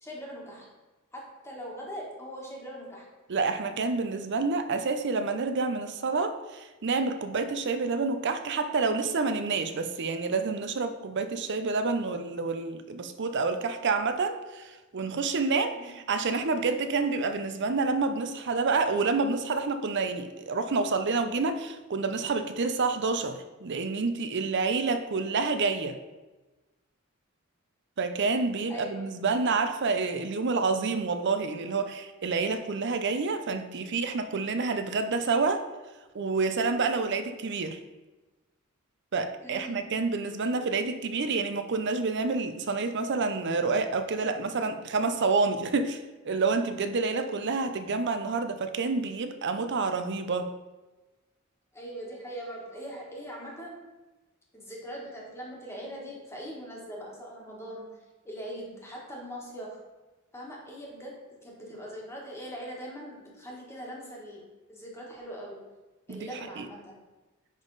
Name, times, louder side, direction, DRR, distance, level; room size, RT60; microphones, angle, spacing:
voice 1, 0.0-0.7 1.1-3.1 15.7-16.0 28.7-29.1 39.4-40.0 51.7-53.8 54.5-58.0 58.2-59.8 60.3-65.6 66.1-66.9, equal, 10° left, -3 dB, 1.6 m, -41 dB
voice 2, 3.3-26.0 28.0-35.6 36.1-37.8 39.1-50.5 66.1-66.3 66.6-66.7, right 4 dB, 55° right, 9 dB, 0.6 m, -28 dB
10.0 x 3.7 x 4.0 m, 1.2 s
head